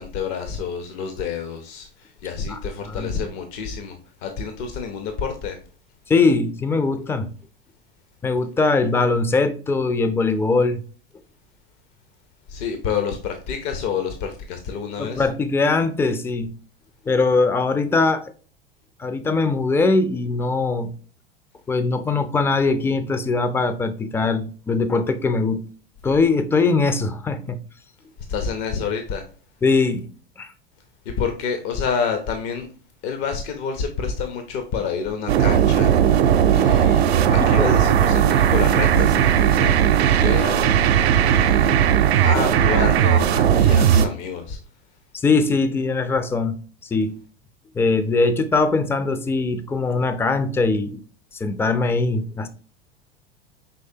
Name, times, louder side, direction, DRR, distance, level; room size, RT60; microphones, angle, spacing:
voice 1, 0.0-5.6 12.5-15.3 28.3-29.3 31.0-32.7 33.0-35.9 36.5-40.7 41.2-42.0 42.2-44.6, left 6 dB, 60° left, 0.8 m, -28 dB
voice 2, 6.1-7.3 8.2-10.8 15.0-16.5 17.1-18.2 19.0-20.9 21.7-25.6 26.0-27.6 29.6-30.1 30.4-30.5 37.4-37.7 45.1-46.5 46.8-47.1 47.7-51.0 51.3-52.5, left 3 dB, 10° left, 0.4 m, -21 dB
sound 1, 35.3-44.1, right 9 dB, 80° right, 0.6 m, -17 dB
5.6 x 3.2 x 2.7 m
hypercardioid pair, 90°, 31 cm